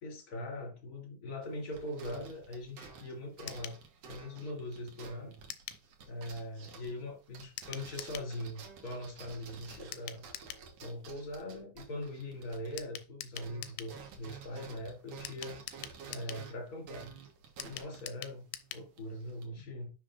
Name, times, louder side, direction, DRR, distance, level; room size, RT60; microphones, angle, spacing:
voice 1, 0.0-3.8 4.1-5.3 6.1-10.3 10.8-15.6 16.1-17.1 17.6-19.9, left 1 dB, 25° left, 2.6 m, -41 dB
sound 1, 1.4-13.1 13.3-19.5, right 6 dB, 60° right, 1.8 m, -51 dB
Metal Clicker Dog Training Mono Clip, 3.5-3.8 5.5-5.8 7.6-8.3 9.9-10.7 12.8-13.9 15.2-16.5 17.6-18.9 19.2-19.3 19.5-19.6, left 13 dB, 85° left, 2.6 m, -44 dB
11.0 x 5.7 x 2.5 m
omnidirectional pair, 4.6 m